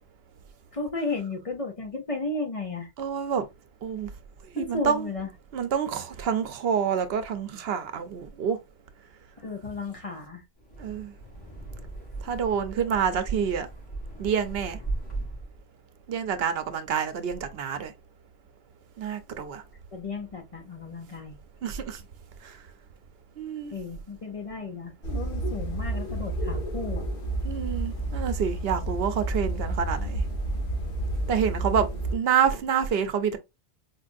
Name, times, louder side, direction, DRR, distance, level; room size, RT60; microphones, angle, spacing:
voice 1, 0.7-2.9 4.6-5.3 9.4-10.4 19.9-21.4 23.7-27.1, left 3 dB, 40° left, 0.7 m, -34 dB
voice 2, 3.0-3.4 3.8-4.1 4.5-5.1 5.5-8.6 10.8-11.1 12.2-13.7 14.2-14.8 16.1-17.9 19.0-19.6 21.6-22.0 22.4-22.6 23.4-23.7 27.4-30.2 31.3-31.9 32.1-33.4, right 7 dB, 75° right, 0.8 m, -27 dB
Wind, 10.6-15.6, right 2 dB, 80° left, 2.1 m, -37 dB
sound 1, 25.0-32.2, right 2 dB, 60° left, 1.4 m, -30 dB
4.4 x 2.5 x 2.5 m
omnidirectional pair, 1.0 m